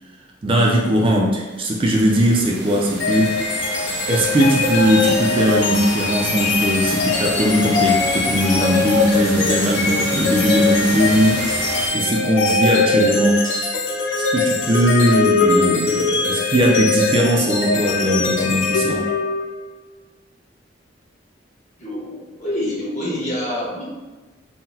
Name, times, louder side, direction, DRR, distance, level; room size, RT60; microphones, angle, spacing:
voice 1, 0.4-3.5 4.1-11.5 11.9-13.4 14.1-19.1, equal, 30° right, -1 dB, 0.3 m, -19 dB
sound 1, 1.5-11.9, right 2 dB, 65° right, 0.6 m, -31 dB
sound 2, 3.0-19.6, left 4 dB, 75° left, 0.5 m, -21 dB
sound 3, 9.5-9.8 10.4-11.1 11.5-11.9 12.4-12.9 13.4-13.7 14.5-15.1, left 2 dB, 20° left, 0.7 m, -36 dB
voice 2, 21.8-23.9, left 1 dB, 40° left, -7 dB, 1.2 m, -26 dB
3.7 x 2.1 x 2.7 m, 1.2 s
head